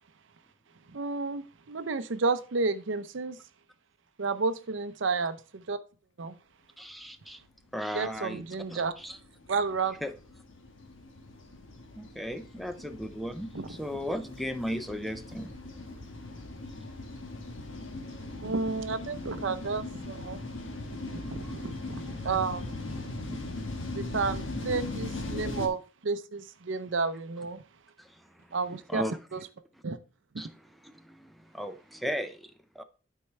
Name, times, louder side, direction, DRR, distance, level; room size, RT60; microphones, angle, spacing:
voice 1, 0.9-3.4 4.2-5.8 6.2-6.3 7.9-8.9 9.5-10.0 13.5-13.8 18.4-20.4 21.1-22.9 23.3-23.4 23.9-27.6 28.5-29.0 29.3-29.5 29.8-30.0, right 4 dB, 70° right, 0.6 m, -31 dB
voice 2, 6.8-7.4 7.7-8.4 8.7-9.2 10.0-10.1 12.0-15.5 21.4-21.5 28.0-28.3 28.9-29.1 30.4-30.5 30.8-32.4 32.8-32.9, equal, ahead, 0.4 m, -36 dB
sound 1, 7.9-25.7, left 2 dB, 75° left, 1.3 m, -39 dB
12.0 x 4.6 x 3.2 m
head